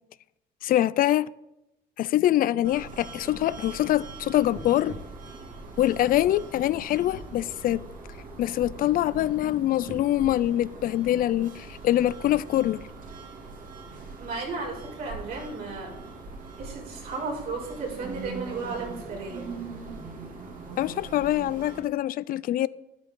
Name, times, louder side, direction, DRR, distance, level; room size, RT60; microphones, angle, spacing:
voice 1, 0.6-1.3 2.0-4.9 5.8-7.8 8.4-12.8 20.8-22.7, left 13 dB, 60° left, 0.4 m, -24 dB
sound 1, 2.6-21.8, right 3 dB, 50° right, 2.3 m, -42 dB
voice 2, 14.2-16.0 16.6-19.5, right 4 dB, 65° right, 5.4 m, -34 dB
12.5 x 11.0 x 3.8 m
cardioid pair, 110°, 17 cm